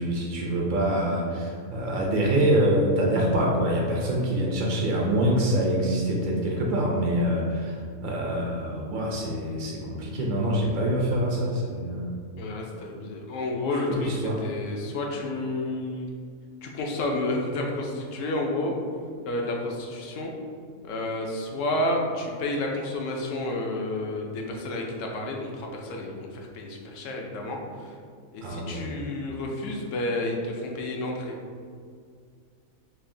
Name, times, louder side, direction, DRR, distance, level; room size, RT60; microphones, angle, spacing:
voice 1, 0.0-12.1 13.9-14.4 28.4-29.0, right 1 dB, 65° right, -2 dB, 0.4 m, -25 dB
voice 2, 12.4-16.1 16.6-18.7 19.2-20.3 20.8-27.9 28.3-31.4, left 2 dB, 70° left, 0 dB, 0.9 m, -30 dB
5.8 x 2.1 x 2.6 m, 2.2 s
omnidirectional pair, 1.4 m